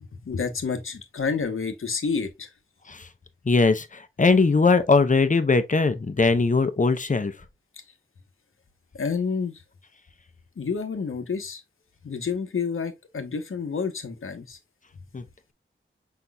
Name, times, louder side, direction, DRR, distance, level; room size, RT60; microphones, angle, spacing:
voice 1, 0.2-2.5 8.9-9.6 10.6-11.6 12.0-14.6, left 5 dB, 80° left, 0.9 m, -29 dB
voice 2, 3.5-3.9 4.2-7.3 15.1-15.2, left 4 dB, 40° left, 0.7 m, -20 dB
5.7 x 4.0 x 2.2 m
wide cardioid pair, 55°, 21 cm